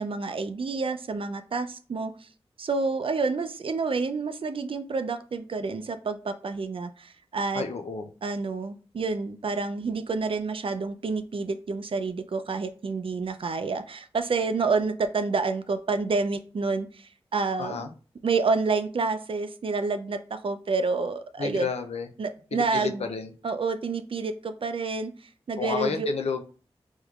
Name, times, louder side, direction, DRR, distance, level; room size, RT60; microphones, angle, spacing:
voice 1, 0.0-2.3 2.6-7.6 8.2-17.9 18.2-21.7 22.2-23.1 23.4-26.1, right 4 dB, 55° right, 10 dB, 0.4 m, -29 dB
voice 2, 7.5-8.1 17.6-17.9 21.4-22.1 22.5-23.3 25.6-26.4, left 5 dB, 75° left, 6 dB, 0.5 m, -31 dB
3.5 x 3.1 x 2.3 m, 0.38 s
cardioid pair, 45°, 11 cm